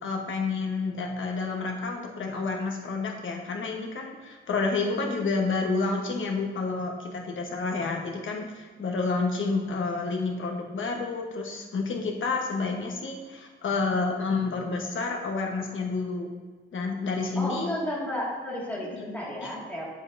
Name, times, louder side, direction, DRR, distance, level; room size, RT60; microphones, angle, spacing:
voice 1, 0.0-16.3 16.7-17.7 18.9-19.0 19.4-19.5, left 4 dB, 80° left, 1 dB, 1.2 m, -29 dB
voice 2, 17.4-19.9, left 1 dB, 10° left, -5 dB, 2.0 m, -32 dB
7.7 x 7.2 x 2.6 m, 1.4 s
wide cardioid pair, 145°, 20 cm